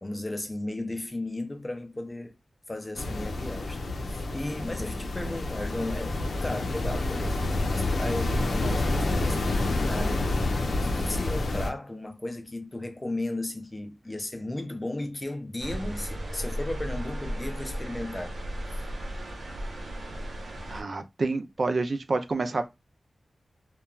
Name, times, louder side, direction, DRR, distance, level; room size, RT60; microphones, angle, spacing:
voice 1, 0.0-2.3 2.7-10.3 10.7-18.3 18.7-18.9, left 2 dB, 20° left, 0.4 m, -35 dB
sound 1, 2.9-11.7, left 2 dB, 85° left, 0.5 m, -28 dB
sound 2, 15.6-20.8, equal, 90° right, 0.6 m, -35 dB
voice 2, 20.7-22.7, right 3 dB, 55° right, 0.3 m, -28 dB
3.0 x 2.2 x 2.3 m
wide cardioid pair, 105°, 0 cm